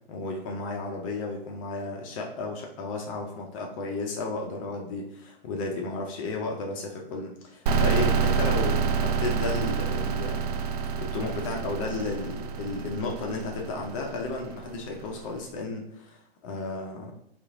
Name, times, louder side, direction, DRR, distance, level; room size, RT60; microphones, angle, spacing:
voice 1, 0.1-10.5 11.0-17.1, left 3 dB, 35° left, 1 dB, 0.6 m, -33 dB
sound 1, 7.7-15.2, right 6 dB, 45° right, 0.4 m, -28 dB
2.9 x 2.5 x 3.7 m, 0.75 s
figure-of-eight pair, 110°, 30 cm